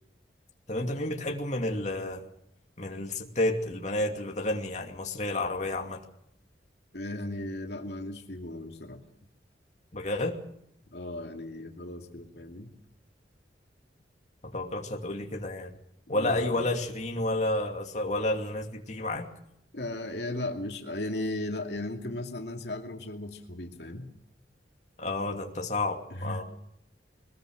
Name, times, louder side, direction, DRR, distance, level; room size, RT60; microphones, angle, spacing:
voice 1, 0.7-2.2 2.8-6.0 9.9-10.4 14.4-15.7 16.1-19.3 25.0-26.4, left 1 dB, 40° left, 3 dB, 2.6 m, -30 dB
voice 2, 6.9-9.0 10.9-12.7 16.1-16.7 19.7-24.1 26.1-26.4, left 1 dB, 70° left, 3 dB, 2.5 m, -36 dB
22.5 x 21.0 x 6.5 m, 0.74 s
head